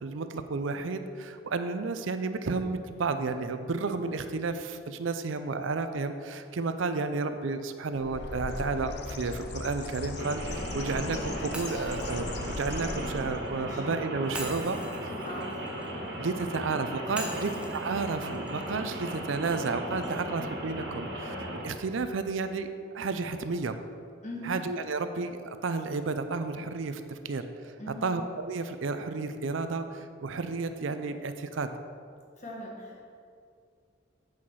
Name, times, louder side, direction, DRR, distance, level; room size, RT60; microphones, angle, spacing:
voice 1, 0.0-14.8 16.2-22.7 22.9-23.8 24.4-27.7 28.0-31.7, right 4 dB, 75° right, 9 dB, 0.5 m, -32 dB
Bird, 7.9-13.5, left 2 dB, 55° left, 0.6 m, -38 dB
Rain, 10.1-21.7, right 1 dB, 55° right, 1.6 m, -37 dB
Shatter, 11.5-13.6 14.3-16.4 17.2-19.2, right 1 dB, 5° right, 0.7 m, -43 dB
voice 2, 14.4-15.7 17.1-17.4 24.2-24.6 27.8-28.1 32.4-33.0, left 1 dB, 35° left, -2 dB, 1.5 m, -42 dB
8.5 x 5.8 x 4.7 m, 2.3 s
head